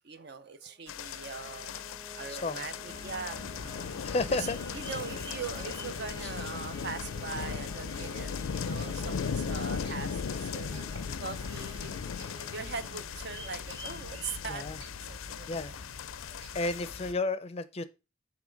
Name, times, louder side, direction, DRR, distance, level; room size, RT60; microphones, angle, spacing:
voice 1, 0.0-1.8 2.2-3.5 4.3-4.5 4.7-10.9 11.2-12.2 12.5-14.7 15.1-15.5 16.3-16.4, right 5 dB, 55° right, 0.6 m, -41 dB
sound 1, 0.8-13.8, right 1 dB, 20° right, 1.3 m, -50 dB
sound 2, 0.9-17.1, left 6 dB, 90° left, 0.4 m, -38 dB
voice 2, 2.3-2.6 4.0-4.6 6.2-6.3 14.5-14.8 15.5-15.7 16.5-17.8, left 3 dB, 30° left, 0.5 m, -32 dB
sound 3, 2.9-17.2, equal, 75° right, 3.0 m, -49 dB
7.3 x 3.2 x 5.1 m
head